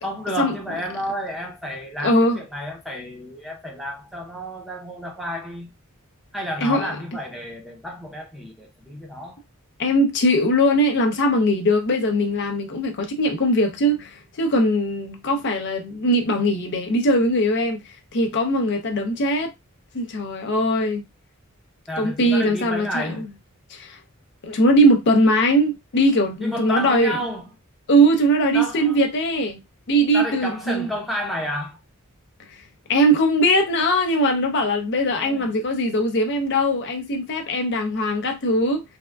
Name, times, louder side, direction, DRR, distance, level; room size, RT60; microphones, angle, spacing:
voice 1, 0.0-5.7 6.3-9.4 21.9-23.2 26.4-27.4 28.5-29.0 30.1-31.8 35.1-35.6, equal, ahead, 0.6 m, -31 dB
voice 2, 2.0-2.4 6.6-7.0 9.8-19.5 19.9-21.0 22.0-23.2 23.7-24.0 24.4-27.2 27.9-29.6 29.9-30.9 32.5-32.6 32.9-38.8, equal, 55° left, 0.6 m, -20 dB
3.4 x 2.2 x 2.2 m
head